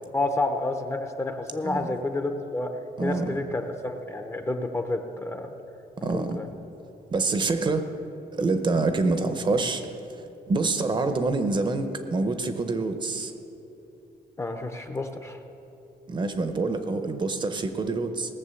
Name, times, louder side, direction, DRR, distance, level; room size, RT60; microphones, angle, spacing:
voice 1, 0.1-2.7 3.0-5.5 6.1-6.5 14.4-15.4, left 2 dB, 15° left, 6 dB, 0.6 m, -29 dB
voice 2, 3.0-3.3 6.0-6.4 7.1-7.9 8.3-13.3 16.1-18.3, right 3 dB, 30° right, 8 dB, 0.6 m, -26 dB
18.0 x 7.1 x 6.9 m, 2.9 s
wide cardioid pair, 180°, 17 cm